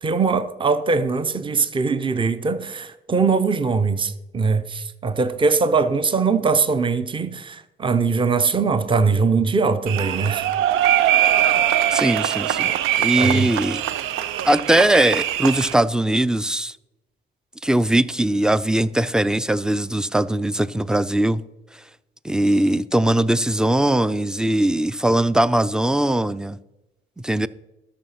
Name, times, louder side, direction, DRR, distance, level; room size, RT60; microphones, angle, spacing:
voice 1, 0.0-10.5 13.1-13.5, right 4 dB, 25° right, 0.7 m, -21 dB
sound 1, 9.9-15.7, right 11 dB, 90° right, 0.5 m, -21 dB
voice 2, 11.9-12.7 13.0-13.8 14.5-16.7 17.6-21.4 22.2-26.6 27.2-27.5, right 1 dB, 5° right, 0.4 m, -20 dB
13.0 x 5.7 x 5.7 m
cardioid pair, 90°, 20 cm